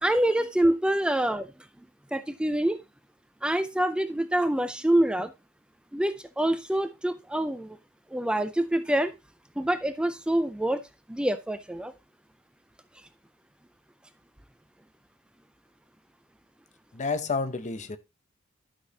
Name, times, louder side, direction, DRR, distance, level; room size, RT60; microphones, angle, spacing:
voice 1, 0.0-1.5 2.1-2.8 3.4-5.3 5.9-7.8 8.1-9.1 9.6-10.8 11.1-11.9, right 1 dB, 5° right, 0.4 m, -26 dB
voice 2, 16.9-18.0, left 4 dB, 35° left, 0.7 m, -30 dB
11.5 x 5.9 x 2.8 m
head